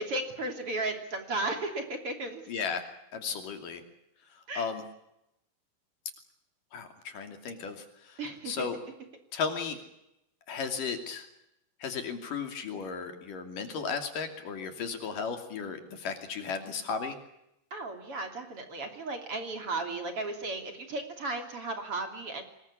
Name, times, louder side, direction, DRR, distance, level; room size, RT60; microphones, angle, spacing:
voice 1, 0.0-2.4 4.5-4.7 8.2-8.7 17.7-22.4, right 2 dB, 40° right, 5 dB, 3.6 m, -35 dB
voice 2, 2.5-2.8 3.1-3.8 4.6-4.8 6.7-8.2 8.5-8.8 9.3-9.8 10.5-11.3 11.8-17.2, left 5 dB, 65° left, 6 dB, 4.2 m, -35 dB
25.5 x 21.0 x 8.5 m, 0.85 s
omnidirectional pair, 4.2 m